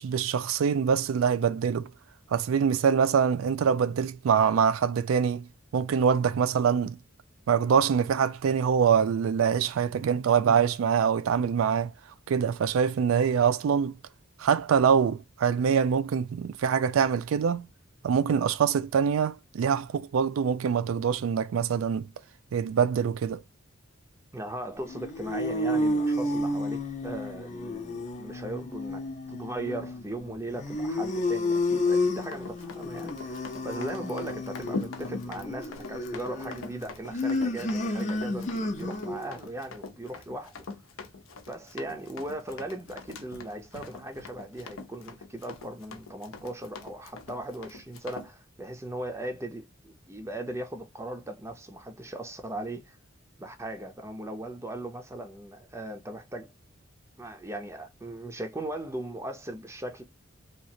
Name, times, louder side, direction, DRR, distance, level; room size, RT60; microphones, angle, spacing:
voice 1, 0.0-1.9 2.3-5.5 5.7-7.0 7.5-11.9 12.3-14.0 14.4-17.7 18.0-22.1 22.5-23.4, right 7 dB, 85° right, 0.3 m, -24 dB
voice 2, 24.3-40.6 41.5-53.0 53.4-56.5 57.2-60.0, right 1 dB, 15° right, 0.5 m, -38 dB
sound 1, 24.8-39.3, left 2 dB, 35° left, 0.6 m, -31 dB
Run, 32.2-48.3, left 3 dB, 85° left, 0.6 m, -42 dB
2.9 x 2.4 x 2.6 m
head